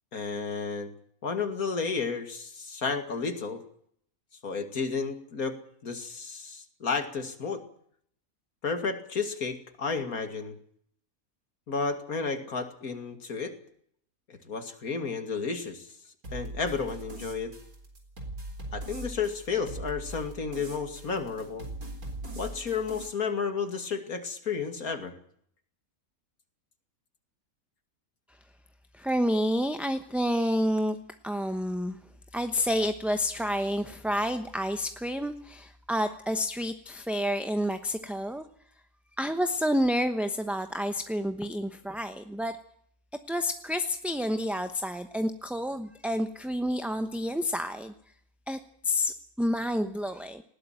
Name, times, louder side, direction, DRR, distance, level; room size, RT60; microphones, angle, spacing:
voice 1, 0.1-0.9 1.2-3.6 4.4-5.6 5.8-7.6 8.6-10.6 11.7-13.6 14.3-15.9 16.3-17.5 18.7-21.7 22.4-25.1, left 5 dB, 90° left, 7 dB, 2.8 m, -32 dB
sound 1, 16.2-23.1, right 1 dB, 80° right, 4.5 m, -41 dB
voice 2, 28.9-31.0 31.2-32.0 32.3-38.4 39.2-42.6 43.3-47.9 48.5-50.4, equal, ahead, 8 dB, 0.8 m, -29 dB
19.5 x 17.0 x 9.1 m, 0.66 s
omnidirectional pair, 1.5 m